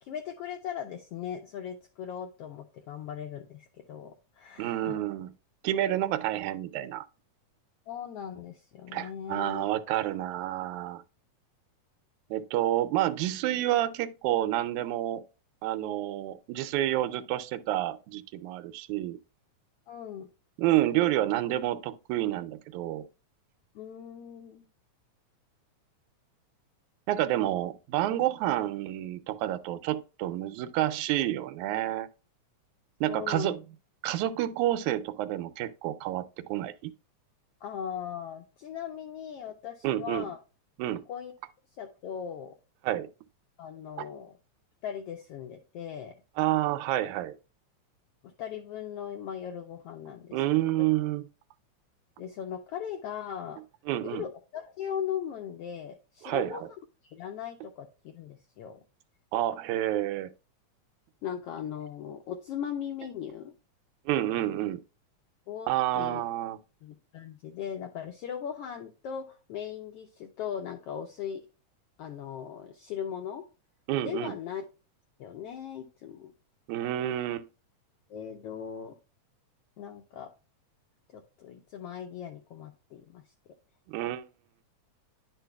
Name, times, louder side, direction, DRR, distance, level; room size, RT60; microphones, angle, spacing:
voice 1, 0.0-5.0 7.9-9.7 19.9-20.3 23.7-24.7 33.1-33.5 37.6-40.4 41.1-41.3 41.8-42.5 43.6-44.4 44.8-46.1 48.2-50.4 52.2-53.6 54.0-56.6 57.0-58.8 61.2-63.5 65.5-65.7 65.9-66.2 66.8-71.4 72.0-73.4 74.0-74.6 75.2-76.3 78.1-78.9 79.8-80.3 81.1-83.3, left 8 dB, 85° left, 1.3 m, -38 dB
voice 2, 4.6-5.3 5.6-7.1 8.9-11.0 12.3-15.2 15.6-19.2 20.6-23.1 27.1-32.1 33.0-33.6 34.0-36.9 39.8-40.3 40.8-41.0 42.8-43.1 44.0-44.1 46.4-47.4 50.3-51.2 53.9-54.2 56.2-56.7 59.3-60.3 64.1-64.8 65.7-66.6 73.9-74.3 76.7-77.5 83.9-84.3, right 13 dB, 85° right, 2.0 m, -29 dB
10.5 x 4.5 x 2.2 m
omnidirectional pair, 3.4 m